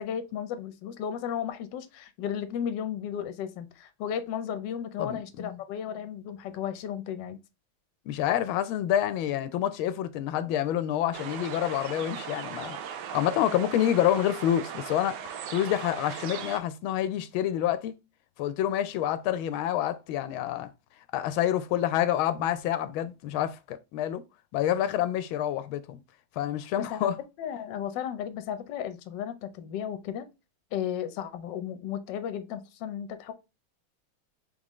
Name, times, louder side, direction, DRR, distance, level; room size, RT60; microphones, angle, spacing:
voice 1, 0.0-7.4 26.9-27.1 27.4-30.2 30.7-33.3, left 9 dB, 70° left, 1.3 m, -34 dB
voice 2, 5.0-5.6 8.1-17.9 18.4-20.7 21.1-24.2 24.5-26.0 26.4-27.2, left 11 dB, 90° left, 1.4 m, -28 dB
sound 1, 11.1-16.6, right 8 dB, 70° right, 1.1 m, -38 dB
3.8 x 3.7 x 3.0 m
omnidirectional pair, 2.2 m